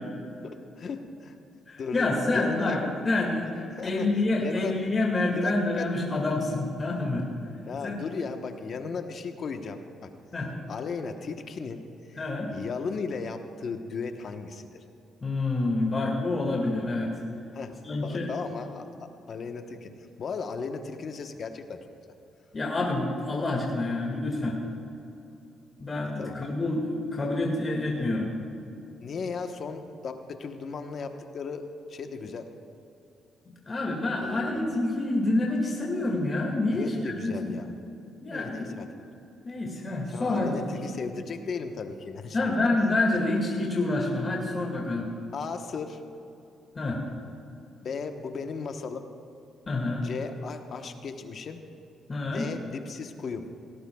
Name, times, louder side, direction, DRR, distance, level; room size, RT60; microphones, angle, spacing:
voice 1, 0.4-1.4 1.8-2.1 2.3-2.7 3.7-4.1 4.4-4.8 5.3-5.9 7.7-10.1 10.7-11.8 12.1-12.2 12.5-14.8 17.5-17.8 18.0-18.9 19.3-19.9 20.2-21.8 26.2-26.4 28.0-28.1 29.0-32.5 34.2-34.7 36.7-37.8 38.3-39.0 40.1-42.5 45.3-46.0 47.8-49.1 50.0-51.6 52.2-53.5, left 5 dB, 55° left, 6 dB, 1.1 m, -36 dB
voice 2, 1.7-7.3 7.8-8.1 10.3-10.5 12.2-12.5 15.2-17.1 17.8-18.3 22.5-24.6 25.8-28.3 33.7-37.5 38.2-38.8 39.4-40.7 42.3-45.1 46.8-47.0 49.7-50.0 52.1-52.4, left 2 dB, 30° left, -1 dB, 2.0 m, -27 dB
18.0 x 17.5 x 2.3 m, 2.8 s
cardioid pair, 90°, 0 cm